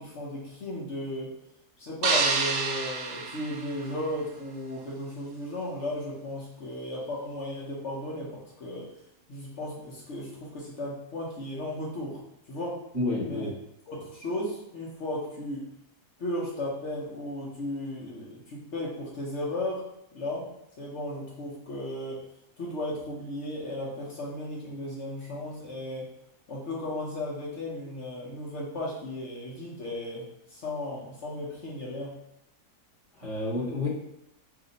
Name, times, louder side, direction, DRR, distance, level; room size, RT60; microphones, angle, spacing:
voice 1, 0.0-1.4 1.8-8.9 9.3-12.2 12.5-12.8 13.2-13.5 13.9-15.7 16.2-19.9 20.1-20.5 20.8-22.2 22.6-26.1 26.5-32.2, left 1 dB, 55° left, -4 dB, 0.9 m, -35 dB
sound 1, 2.0-4.3, right 4 dB, 85° right, 1.2 m, -28 dB
voice 2, 12.9-13.5 33.2-33.9, left 2 dB, 25° right, -7 dB, 0.9 m, -29 dB
2.8 x 2.5 x 3.8 m, 0.83 s
omnidirectional pair, 1.7 m